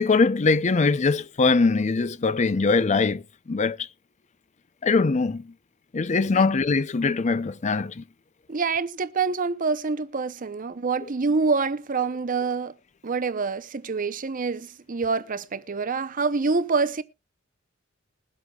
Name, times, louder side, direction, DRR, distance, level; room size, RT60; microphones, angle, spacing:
voice 1, 0.0-3.2 3.5-3.8 4.8-5.4 5.9-8.0, left 4 dB, 35° left, 0.5 m, -22 dB
voice 2, 8.5-12.7 13.0-17.0, right 4 dB, 40° right, 0.7 m, -26 dB
21.5 x 8.1 x 2.3 m
head